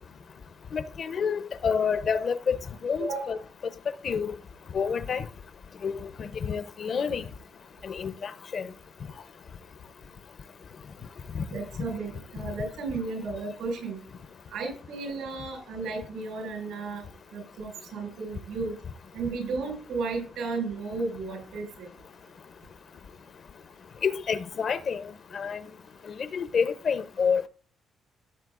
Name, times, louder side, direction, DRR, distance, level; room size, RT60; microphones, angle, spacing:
voice 1, 0.7-2.6 2.8-3.4 4.0-4.4 4.7-5.2 5.8-7.2 7.8-8.7 11.3-11.4 24.0-25.1 25.3-25.6 26.3-27.4, left 6 dB, 50° left, 0.7 m, -28 dB
voice 2, 3.0-3.3 11.5-14.0 14.5-17.0 17.3-18.8 19.1-21.9, right 4 dB, 85° right, 5.3 m, -34 dB
15.5 x 7.5 x 2.5 m
cardioid pair, 90°, 0 cm